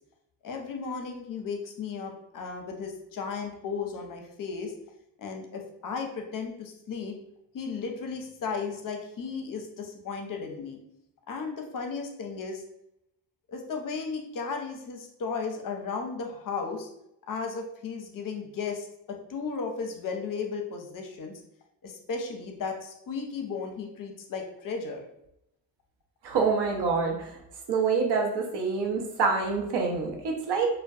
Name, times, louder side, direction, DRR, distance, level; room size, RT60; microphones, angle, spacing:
voice 1, 0.4-4.7 5.2-7.2 7.5-10.8 11.3-12.6 13.5-16.9 17.3-21.4 21.8-25.0, left 5 dB, 45° left, 3 dB, 0.6 m, -35 dB
voice 2, 26.2-27.4 27.7-30.7, right 5 dB, 60° right, 1 dB, 0.8 m, -26 dB
2.2 x 2.1 x 2.6 m, 0.80 s
supercardioid pair, 50°, 46 cm